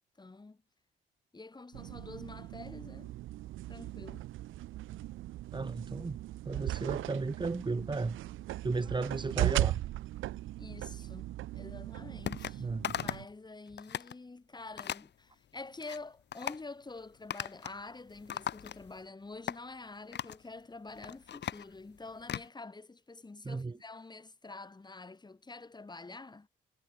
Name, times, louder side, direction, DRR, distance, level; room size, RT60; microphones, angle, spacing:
voice 1, 0.2-0.6 1.3-3.1 3.7-4.3 10.6-12.7 12.9-26.5, left 3 dB, 20° left, 4.9 m, -47 dB
sound 1, 1.7-13.3, right 15 dB, 90° right, 1.8 m, -38 dB
voice 2, 5.5-6.2 6.4-8.2 8.6-9.8 12.6-13.0 23.4-23.8, right 3 dB, 25° right, 2.6 m, -34 dB
sound 2, 12.3-12.6 12.8-13.3 13.7-14.1 14.8-15.1 15.6-16.0 16.3-16.6 17.3-17.8 18.1-19.0 19.5-19.6 20.1-20.4 20.9-22.5, left 9 dB, 60° left, 2.4 m, -38 dB
cardioid pair, 90°, 20 cm